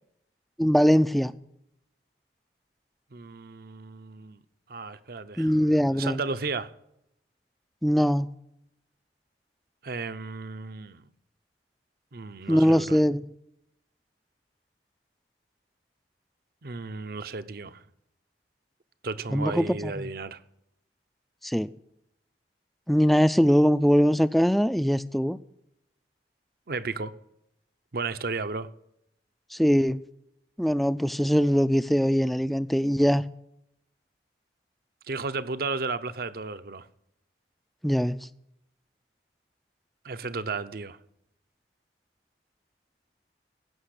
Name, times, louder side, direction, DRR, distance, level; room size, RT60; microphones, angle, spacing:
voice 1, 0.6-1.3 5.4-6.2 7.8-8.3 12.5-13.2 19.3-20.1 21.4-21.7 22.9-25.4 29.5-30.0 30.6-33.2 37.8-38.2, equal, ahead, 0.3 m, -22 dB
voice 2, 3.1-4.4 4.7-5.6 5.9-6.7 9.8-11.0 12.1-13.0 16.6-17.8 19.0-20.4 26.7-27.1 27.9-28.7 35.1-36.9 40.0-41.0, right 4 dB, 55° right, 0.7 m, -34 dB
16.0 x 6.1 x 6.6 m
head